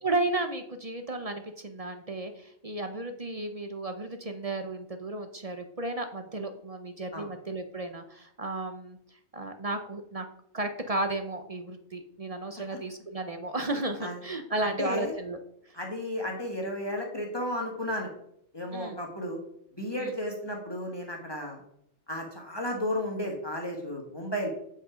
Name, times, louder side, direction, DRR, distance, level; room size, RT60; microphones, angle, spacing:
voice 1, 0.0-9.0 9.3-10.2 10.5-15.4 18.7-19.0 20.0-20.1, right 2 dB, 35° right, 7 dB, 0.8 m, -33 dB
voice 2, 14.6-15.1 15.7-18.1 18.5-19.4 19.8-21.6 22.1-24.5, left 1 dB, 20° left, 0 dB, 1.7 m, -33 dB
8.3 x 5.6 x 5.0 m, 0.71 s
omnidirectional pair, 1.1 m